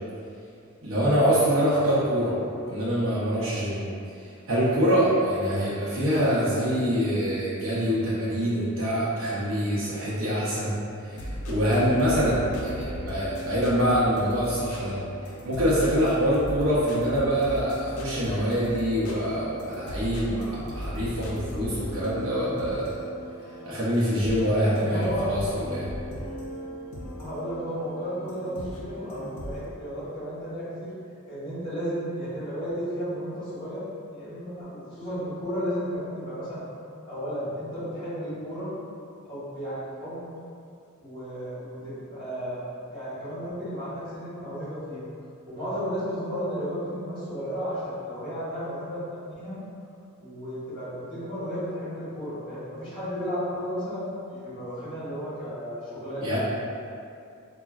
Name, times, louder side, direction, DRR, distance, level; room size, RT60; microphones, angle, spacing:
voice 1, 0.8-3.8 4.2-10.8 11.0-15.0 15.4-22.9 23.7-25.9 56.2-56.4, equal, 65° right, -9 dB, 0.6 m, -25 dB
sound 1, 11.1-29.7, equal, 85° left, 0.4 m, -37 dB
voice 2, 24.6-25.3 27.2-30.9 31.3-36.6 37.1-38.7 39.2-40.2 41.0-42.6 42.9-45.0 45.5-49.6 50.2-56.4, equal, 25° left, -11 dB, 1.1 m, -33 dB
3.3 x 2.1 x 2.3 m, 2.5 s
head